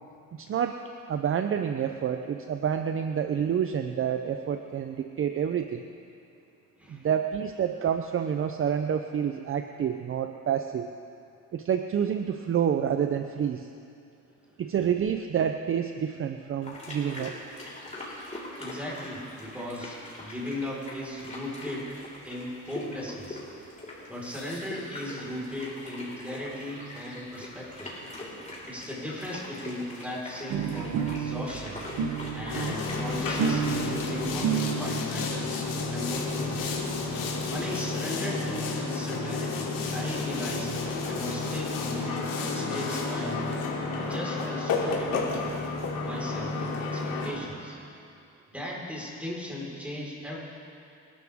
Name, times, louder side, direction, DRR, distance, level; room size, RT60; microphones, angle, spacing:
voice 1, 0.3-0.8 1.1-5.9 6.9-10.9 11.5-13.7 14.6-17.4, right 8 dB, 40° right, 7 dB, 0.7 m, -28 dB
sound 1, 16.6-33.7, left 1 dB, 20° left, 4.4 m, -42 dB
voice 2, 18.6-21.9 22.2-23.4 24.1-27.9 28.6-31.8 32.3-36.6 37.5-40.7 41.1-43.6 44.1-45.4 46.0-47.8 48.5-50.4, equal, 5° right, -5 dB, 4.7 m, -37 dB
sound 2, 30.5-35.1 35.9-36.0 36.3-36.4 36.6-36.7 36.9-37.6, right 8 dB, 75° right, 1.1 m, -31 dB
Boat Water vehicle, 32.5-47.3, left 3 dB, 80° left, 3.2 m, -31 dB
27.0 x 12.5 x 3.7 m, 2.5 s
cardioid pair, 110°, 33 cm